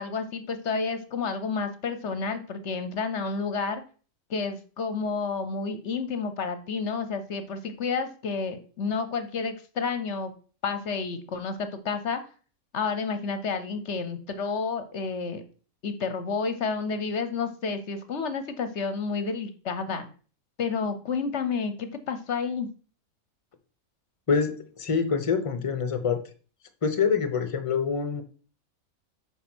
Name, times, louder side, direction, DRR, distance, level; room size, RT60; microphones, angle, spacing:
voice 1, 0.0-3.8 4.3-10.3 10.6-12.2 12.7-15.4 15.8-20.1 20.6-22.7, left 5 dB, 55° left, 10 dB, 1.0 m, -30 dB
voice 2, 24.3-26.2 26.8-28.2, left 6 dB, 30° left, 9 dB, 0.8 m, -26 dB
8.4 x 3.9 x 6.1 m, 0.40 s
omnidirectional pair, 1.5 m